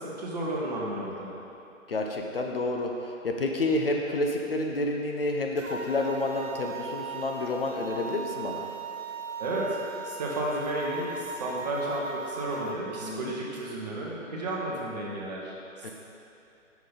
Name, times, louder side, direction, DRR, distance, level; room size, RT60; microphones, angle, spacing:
voice 1, 0.0-1.3 9.4-9.8 10.0-15.9, right 1 dB, 30° right, -4 dB, 1.1 m, -32 dB
voice 2, 1.9-8.7 13.0-13.4, left 2 dB, 45° left, 1 dB, 0.6 m, -29 dB
sound 1, 5.6-12.8, right 4 dB, 70° right, 1.0 m, -38 dB
7.2 x 5.9 x 4.0 m, 2.8 s
figure-of-eight pair, 135°, 40 cm